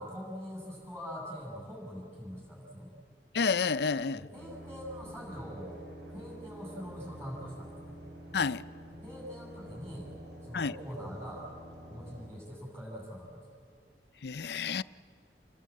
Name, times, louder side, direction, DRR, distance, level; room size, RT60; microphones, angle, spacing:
voice 1, 0.0-2.9 4.1-5.8 6.1-8.0 9.0-10.1 10.4-11.5 11.9-13.5, equal, 15° right, 7.3 m, -43 dB
voice 2, 3.3-4.2 8.3-8.6 10.5-10.7 14.2-14.8, left 5 dB, 65° left, 0.5 m, -29 dB
sound 1, 4.3-12.3, right 1 dB, 90° right, 5.6 m, -48 dB
27.5 x 21.0 x 8.5 m
head